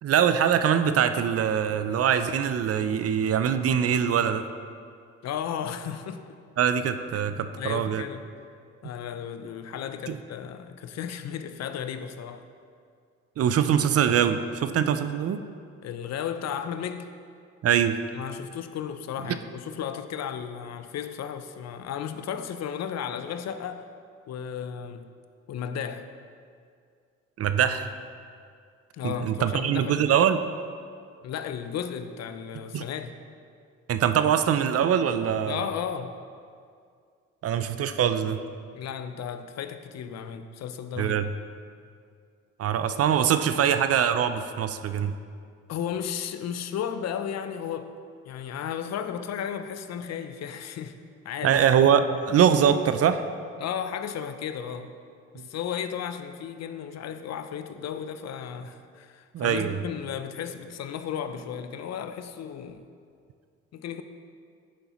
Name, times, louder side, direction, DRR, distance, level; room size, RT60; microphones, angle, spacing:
voice 1, 0.0-4.4 6.6-8.0 10.1-10.2 13.4-15.4 17.6-18.0 27.4-27.9 29.0-30.4 32.7-32.8 33.9-35.7 37.4-38.4 41.0-41.3 42.6-45.1 51.4-53.2 55.4-55.5 59.3-59.8, right 8 dB, 50° right, 0.5 m, -23 dB
voice 2, 5.2-6.3 7.1-8.3 8.8-12.4 15.8-17.1 18.1-23.9 24.3-25.1 25.5-26.1 28.9-30.1 31.2-33.2 35.5-36.2 38.7-41.2 45.7-47.9 48.2-51.0 51.2-51.9 53.6-54.9 55.3-62.9 63.7-64.0, left 8 dB, 60° left, 0.6 m, -34 dB
9.3 x 6.8 x 3.0 m
supercardioid pair, 60°, 30 cm